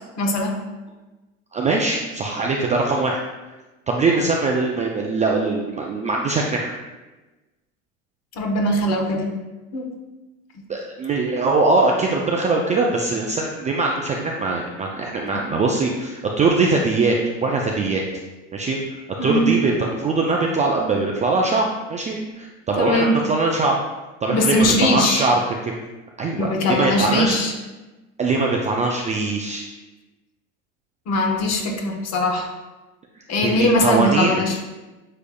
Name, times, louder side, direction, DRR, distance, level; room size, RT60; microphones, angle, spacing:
voice 1, 0.2-0.6 8.4-9.3 9.7-9.9 15.3-15.4 19.2-19.5 22.8-23.2 24.3-25.3 26.4-27.5 31.1-32.5 33.3-34.6, left 1 dB, 40° left, 2 dB, 1.0 m, -20 dB
voice 2, 1.5-3.2 3.9-6.7 10.7-18.0 18.5-18.8 19.2-23.8 24.2-25.7 26.2-27.4 28.2-29.6 33.4-34.3, right 3 dB, 20° right, -1 dB, 0.3 m, -22 dB
6.5 x 3.3 x 2.2 m, 1.1 s
hypercardioid pair, 90°, 39 cm